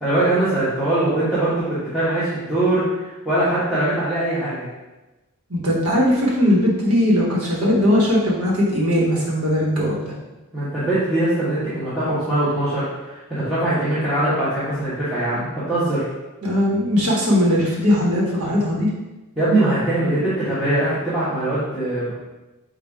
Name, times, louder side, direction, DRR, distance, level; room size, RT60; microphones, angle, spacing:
voice 1, 0.0-4.7 10.5-16.1 19.4-22.1, right 1 dB, ahead, -15 dB, 1.2 m, -22 dB
voice 2, 5.5-10.1 16.4-18.9, equal, 80° right, -4 dB, 1.3 m, -19 dB
5.3 x 2.6 x 3.5 m, 1.1 s
head